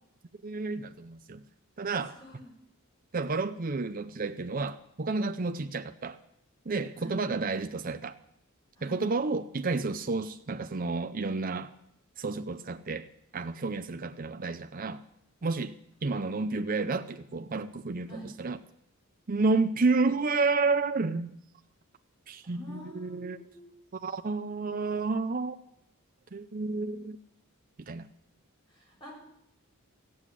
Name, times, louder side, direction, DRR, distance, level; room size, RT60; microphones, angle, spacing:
voice 1, 0.4-1.4 1.8-2.1 3.1-6.2 6.7-8.1 8.8-11.7 12.2-13.1 13.3-15.0 15.4-18.6 19.3-21.3 22.3-23.4 24.0-25.6 26.3-27.2 27.9-28.1, right 3 dB, 40° right, 0.6 m, -30 dB
voice 2, 2.1-2.5 7.0-7.2 8.8-9.0 18.1-18.3 22.4-23.7 28.7-29.1, right 1 dB, 20° left, 6.1 m, -46 dB
15.0 x 7.8 x 9.8 m
head